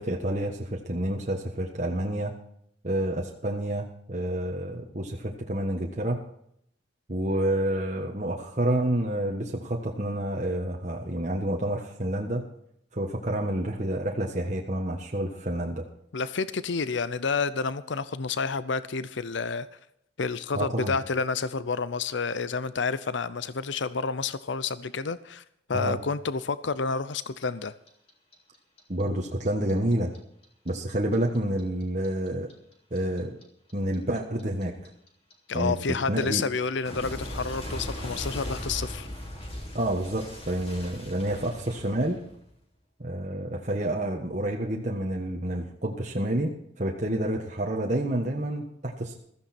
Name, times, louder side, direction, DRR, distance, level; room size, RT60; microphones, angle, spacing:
voice 1, 0.0-2.3 2.8-6.2 7.1-12.5 12.9-15.8 20.5-20.9 25.7-26.0 28.9-30.1 30.6-32.5 32.9-33.4 33.7-34.7 35.5-35.8 36.1-36.4 39.7-42.2 43.0-49.2, right 1 dB, 40° right, 1.5 m, -29 dB
voice 2, 16.1-19.7 20.2-25.4 25.7-27.7 35.5-39.1, left 4 dB, 70° left, 0.7 m, -29 dB
Clock, 27.2-30.2 30.4-33.4 33.7-42.6, equal, 30° left, 3.3 m, -38 dB
15.5 x 14.5 x 4.4 m
head